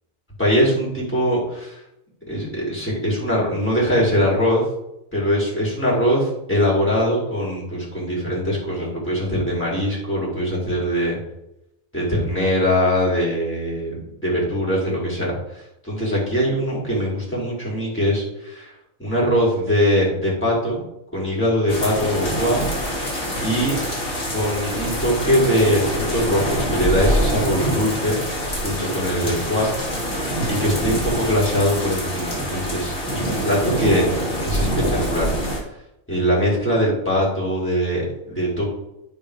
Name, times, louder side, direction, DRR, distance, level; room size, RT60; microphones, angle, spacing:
voice 1, 0.4-1.8 2.3-4.6 5.1-11.2 11.9-15.3 15.9-18.7 19.0-20.8 21.1-22.7 23.4-23.8 24.3-28.2 28.6-30.2 30.5-34.1 34.4-35.3 36.1-38.7, equal, 10° left, -6 dB, 4.1 m, -22 dB
sound 1, 21.7-35.6, equal, 40° left, 2.2 m, -25 dB
11.5 x 4.9 x 5.1 m, 0.84 s
omnidirectional pair, 1.5 m